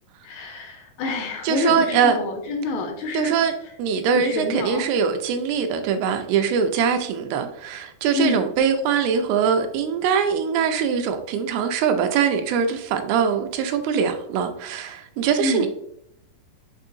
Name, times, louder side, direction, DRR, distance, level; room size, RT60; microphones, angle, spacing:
voice 1, 0.2-3.3 4.1-4.9 8.1-8.5 15.4-15.7, left 3 dB, 80° left, 3 dB, 2.1 m, -27 dB
voice 2, 1.4-2.2 3.1-3.5 3.8-15.7, right 7 dB, 85° right, 6 dB, 2.5 m, -22 dB
6.8 x 2.7 x 2.6 m, 0.72 s
omnidirectional pair, 4.4 m